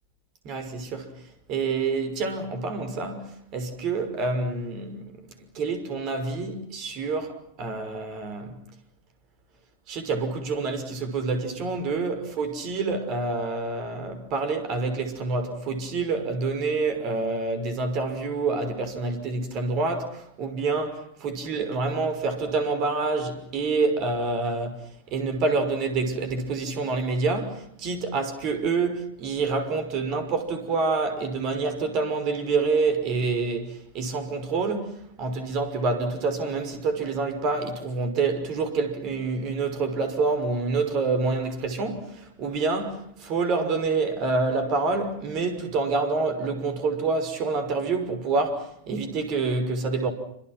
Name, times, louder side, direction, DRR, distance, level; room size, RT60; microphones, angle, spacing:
voice 1, 0.4-1.2 1.5-8.6 9.9-50.1, right 3 dB, 40° right, 5.9 m, -27 dB
29.0 x 26.5 x 6.1 m
figure-of-eight pair, 90°, 0 cm